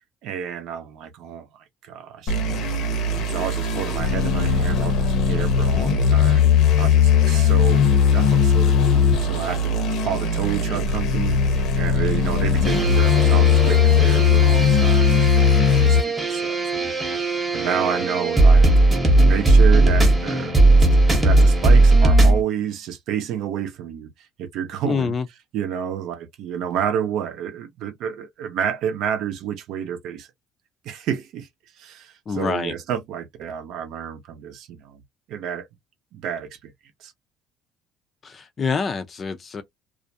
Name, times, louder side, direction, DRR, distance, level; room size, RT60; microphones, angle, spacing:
voice 1, 0.2-2.8 3.3-6.5 6.8-9.7 10.0-18.7 19.2-20.6 20.9-25.1 25.5-30.3 30.8-31.5 31.8-35.0 35.3-35.7 36.1-36.7 37.0-37.1, right 8 dB, 65° right, 0.6 m, -30 dB
sound 1, 2.3-16.0, left 6 dB, 60° left, 0.8 m, -18 dB
sound 2, 12.6-22.4, right 2 dB, 10° right, 0.8 m, -17 dB
voice 2, 24.8-25.3 32.3-32.7 38.2-39.6, left 5 dB, 30° left, 0.4 m, -26 dB
2.4 x 2.1 x 2.6 m
cardioid pair, 140°, 0 cm